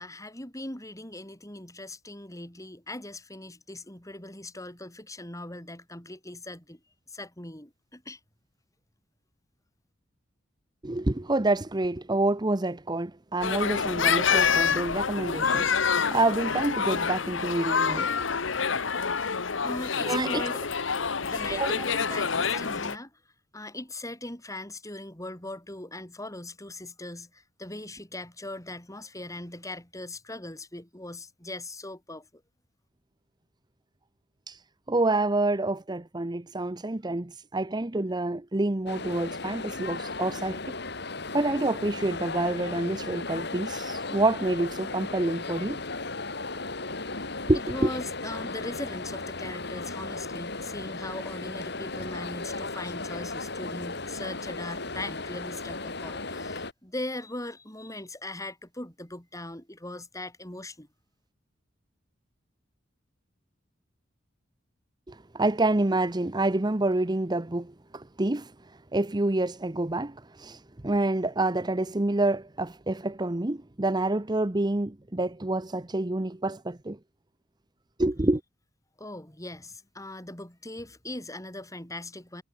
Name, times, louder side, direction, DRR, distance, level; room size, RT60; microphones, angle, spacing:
voice 1, 0.0-6.8 7.1-8.2 19.6-20.6 21.2-23.1 23.5-32.3 47.2-60.9 79.0-82.4, left 1 dB, 15° left, 5.5 m, -40 dB
voice 2, 10.8-15.7 16.1-18.1 20.0-20.4 21.5-21.8 34.5-34.6 34.9-40.8 41.3-45.8 47.5-47.6 65.1-68.5 68.9-77.0 78.0-78.4, right 2 dB, 20° right, 0.9 m, -27 dB
sound 1, 13.4-23.0, left 6 dB, 85° left, 1.2 m, -27 dB
sound 2, 38.9-56.7, left 3 dB, 60° left, 5.4 m, -36 dB
head